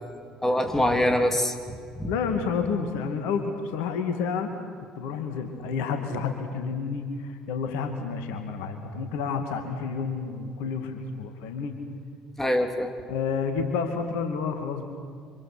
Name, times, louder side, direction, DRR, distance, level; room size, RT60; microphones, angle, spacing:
voice 1, 0.4-2.1 12.4-12.9, left 1 dB, 10° left, 5 dB, 3.3 m, -24 dB
voice 2, 2.0-4.5 4.8-11.7 13.0-14.9, left 5 dB, 65° left, 6 dB, 2.4 m, -30 dB
28.0 x 26.0 x 6.1 m, 2.1 s
figure-of-eight pair, 55°, 3 cm